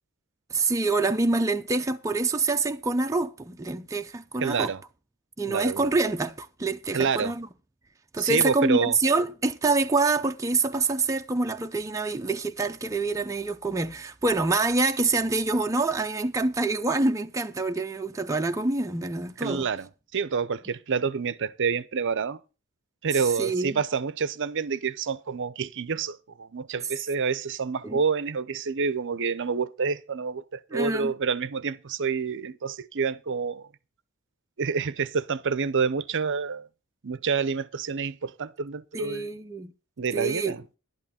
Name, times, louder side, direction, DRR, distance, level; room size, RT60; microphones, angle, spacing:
voice 1, 0.5-4.7 5.4-7.5 8.1-19.7 23.4-23.8 27.8-28.0 30.7-31.1 38.9-39.7 40.1-40.6, right 3 dB, 15° right, 0.5 m, -26 dB
voice 2, 4.4-4.8 5.5-5.9 6.9-7.3 8.2-9.0 19.4-22.4 23.0-33.7 34.6-36.7 37.0-39.3 40.0-40.6, right 5 dB, 55° right, 0.6 m, -28 dB
11.5 x 11.0 x 4.3 m
head